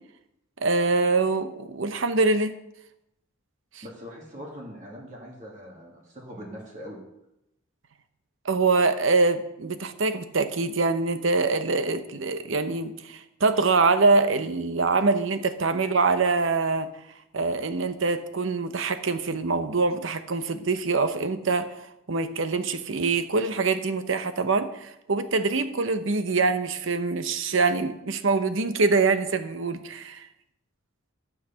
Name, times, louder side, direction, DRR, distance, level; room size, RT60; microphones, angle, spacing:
voice 1, 0.6-2.5 3.7-3.8 8.4-16.9 17.3-21.8 22.1-30.3, right 3 dB, 65° right, 10 dB, 0.8 m, -24 dB
voice 2, 3.8-7.0, equal, 35° right, -2 dB, 2.1 m, -41 dB
12.5 x 6.5 x 5.7 m, 0.85 s
head